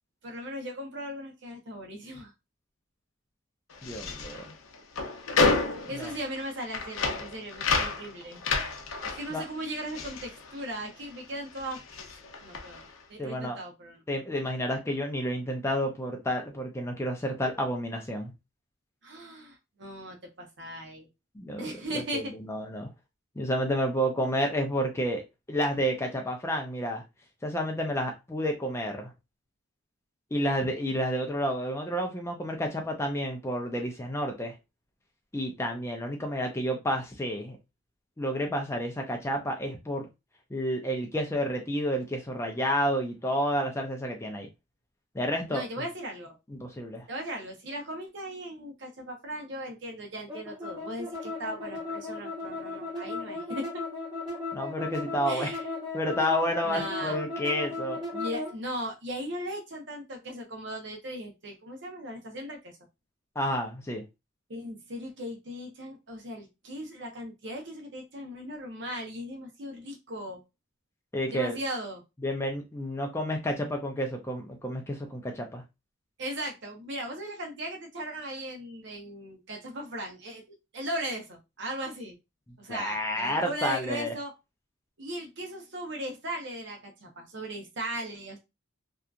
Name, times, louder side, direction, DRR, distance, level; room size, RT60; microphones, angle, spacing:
voice 1, 0.2-2.3 5.9-8.4 9.0-12.8 13.1-14.0 19.0-21.1 21.6-22.3 45.5-46.3 47.1-53.8 55.3-55.6 56.6-57.2 58.1-62.7 64.5-70.4 71.3-72.0 76.2-80.4 80.7-82.2 82.6-84.3 85.0-88.4, right 1 dB, 60° right, 0.8 m, -38 dB
sound 1, 3.7-11.2 11.5-12.9, left 4 dB, 85° left, 0.5 m, -31 dB
voice 2, 3.8-4.4 6.0-6.1 9.3-9.4 13.2-13.6 14.1-18.3 21.4-22.9 23.4-25.2 25.5-27.0 27.4-29.1 30.3-34.6 35.3-37.6 38.2-40.1 40.5-44.5 45.1-45.6 46.5-47.0 54.5-55.5 55.9-58.0 63.4-64.0 71.1-71.6 72.2-75.6 82.7-84.1, equal, 15° left, 0.4 m, -30 dB
sound 2, 50.3-58.5, left 3 dB, 20° right, 1.2 m, -36 dB
2.8 x 2.3 x 2.4 m
head